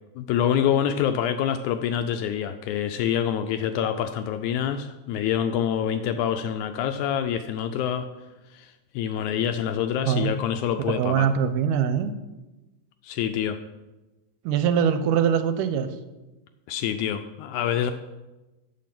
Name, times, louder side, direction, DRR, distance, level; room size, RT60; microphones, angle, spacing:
voice 1, 0.2-8.1 8.5-11.3 13.0-13.6 16.7-17.9, left 9 dB, 80° left, 8 dB, 1.8 m, -26 dB
voice 2, 11.0-12.1 14.5-15.9, right 8 dB, 85° right, 10 dB, 2.2 m, -22 dB
9.1 x 7.5 x 5.9 m, 1.1 s
omnidirectional pair, 3.8 m